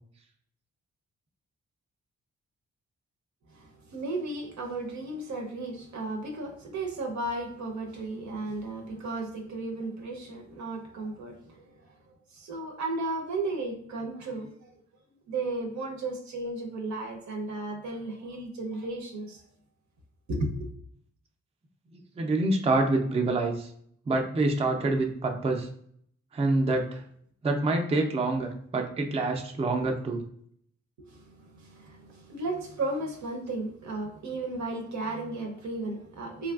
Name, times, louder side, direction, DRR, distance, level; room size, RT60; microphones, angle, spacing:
voice 1, 3.5-11.9 12.3-14.8 15.3-19.4 20.3-20.7 31.0-36.5, right 2 dB, 70° right, 2 dB, 0.6 m, -34 dB
voice 2, 22.2-23.7 24.1-25.7 26.3-27.0 27.4-30.2, right 2 dB, 20° right, 3 dB, 0.4 m, -26 dB
3.0 x 2.4 x 2.3 m, 0.64 s
cardioid pair, 70°, 29 cm